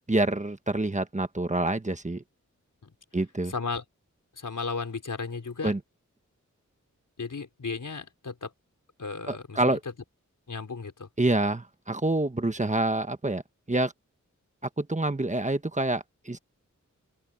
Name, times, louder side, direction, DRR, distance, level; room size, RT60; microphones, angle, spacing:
voice 1, 0.1-2.2 3.1-3.5 5.6-5.8 9.3-9.8 11.2-13.4 13.7-13.9 14.8-16.4, right 2 dB, 25° right, 1.3 m, -27 dB
voice 2, 3.5-3.8 4.3-5.7 7.2-8.5 9.0-9.8 10.5-11.1, left 4 dB, 85° left, 4.4 m, -35 dB
open air
wide cardioid pair, 80°, 30 cm